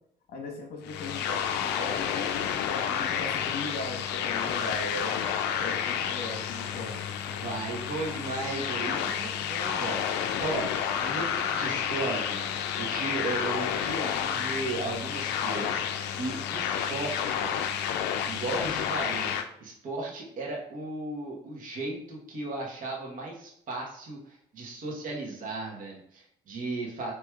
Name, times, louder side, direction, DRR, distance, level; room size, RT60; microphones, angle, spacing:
voice 1, 0.3-5.1 5.6-7.4, left 2 dB, 65° left, 1 dB, 1.1 m, -38 dB
sound 1, 0.8-19.5, left 8 dB, 90° left, 0.4 m, -30 dB
voice 2, 7.4-10.7 11.0-17.9 18.2-19.3 19.6-27.1, right 2 dB, 55° right, -2 dB, 1.1 m, -36 dB
4.5 x 2.9 x 2.3 m, 0.71 s
cardioid pair, 110°, 17 cm